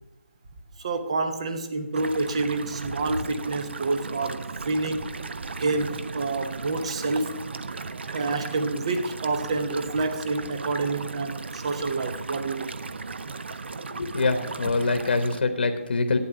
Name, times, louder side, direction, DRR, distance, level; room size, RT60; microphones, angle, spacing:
voice 1, 0.8-5.1 5.6-7.3 8.1-12.7, right 3 dB, 25° right, 9 dB, 0.8 m, -28 dB
sound 1, 1.9-15.4, right 4 dB, 50° right, 0.6 m, -36 dB
voice 2, 13.9-16.2, left 3 dB, 45° left, 6 dB, 1.1 m, -24 dB
11.5 x 9.0 x 6.8 m, 0.98 s
hypercardioid pair, 175°, 7 cm